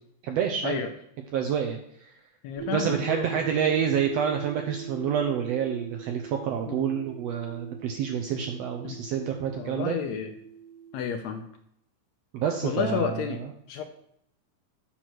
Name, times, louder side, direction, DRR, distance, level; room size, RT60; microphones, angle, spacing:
voice 1, 0.2-0.8 1.3-1.8 2.7-10.0 12.3-13.2, right 8 dB, 75° right, 4 dB, 1.5 m, -28 dB
voice 2, 2.4-3.5 6.7-6.9 8.8-9.0 9.5-10.3 10.9-11.4 12.6-13.4 13.7-13.8, left 7 dB, 80° left, 6 dB, 1.7 m, -31 dB
sound 1, 2.6-11.4, right 8 dB, 40° right, 1.2 m, -42 dB
8.1 x 6.1 x 4.6 m, 0.72 s
omnidirectional pair, 3.6 m